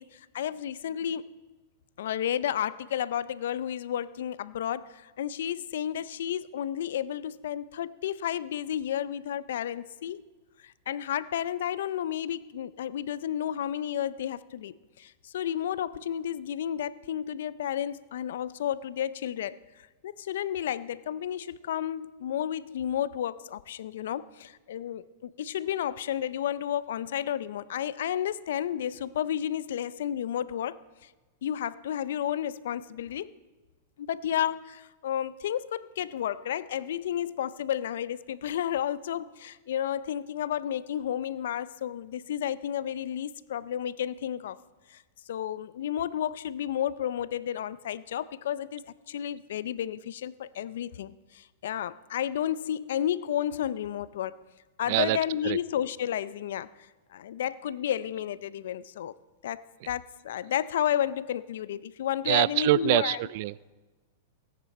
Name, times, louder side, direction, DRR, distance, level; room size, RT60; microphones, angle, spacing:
voice 1, 0.0-1.3 2.0-10.2 10.6-19.6 20.0-31.1 31.4-33.3 34.0-44.6 44.9-45.0 45.3-54.3 54.8-59.1 59.4-63.2, left 10 dB, 75° left, 0.5 m, -32 dB
voice 2, 62.3-63.7, right 17 dB, 55° right, 0.4 m, -25 dB
17.5 x 9.6 x 4.2 m
hypercardioid pair, 125°, 0 cm